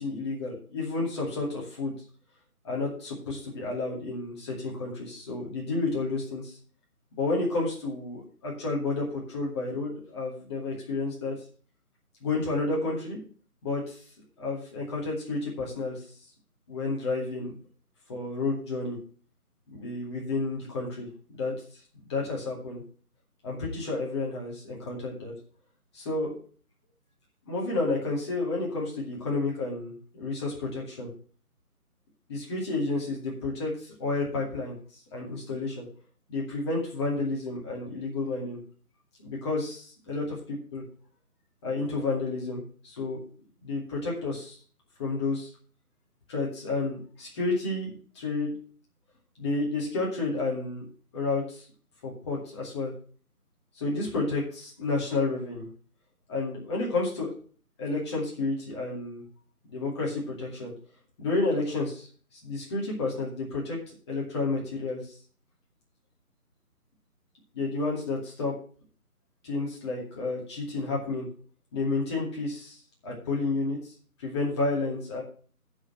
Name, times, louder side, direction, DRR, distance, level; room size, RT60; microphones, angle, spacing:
voice 1, 0.0-1.9 2.6-6.6 7.1-11.3 12.2-13.2 13.6-14.0 14.4-16.0 16.7-17.5 18.1-19.0 19.7-21.1 21.3-21.5 22.1-22.8 23.4-25.3 25.9-26.4 27.5-31.1 32.3-34.7 35.1-35.9 36.3-38.6 39.2-40.8 41.6-43.2 43.6-44.6 45.0-45.5 46.3-47.9 48.1-48.5 49.4-50.8 51.1-51.7 52.0-52.9 53.8-55.7 56.3-57.3 57.8-59.2 59.7-60.7 61.2-62.1 62.3-63.8 64.1-65.0 67.5-68.5 69.4-71.3 71.7-72.8 73.0-73.9 74.2-75.2, left 3 dB, 20° left, -3 dB, 2.4 m, -30 dB
7.6 x 6.4 x 7.7 m, 0.42 s
figure-of-eight pair, 160°, 45 cm